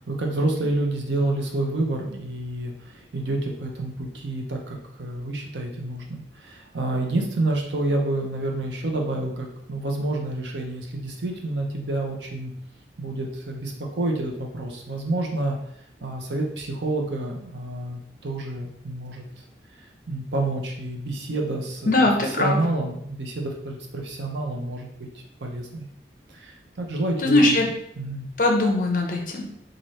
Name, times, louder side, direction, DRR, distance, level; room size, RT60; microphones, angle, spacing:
voice 1, 0.1-12.5 13.0-15.6 16.0-19.2 20.1-21.9 22.3-25.1 25.4-25.9 26.3-27.5 28.0-28.3, right 2 dB, 90° right, 1 dB, 0.8 m, -28 dB
voice 2, 21.9-22.6 27.2-27.7 28.4-29.4, left 2 dB, 50° left, 1 dB, 0.7 m, -20 dB
3.2 x 2.6 x 4.1 m, 0.73 s
head